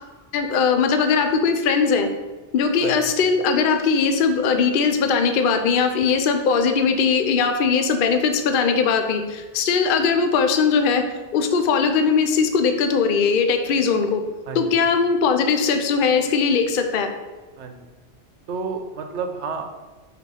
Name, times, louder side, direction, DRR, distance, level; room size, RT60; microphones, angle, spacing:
voice 1, 0.3-2.1 2.5-11.0 11.3-14.2 14.5-17.1, left 5 dB, 55° left, 6 dB, 0.7 m, -20 dB
voice 2, 14.5-14.8 17.6-17.9 18.5-19.8, right 5 dB, 75° right, 6 dB, 1.0 m, -31 dB
4.8 x 4.2 x 5.4 m, 1.2 s
omnidirectional pair, 1.2 m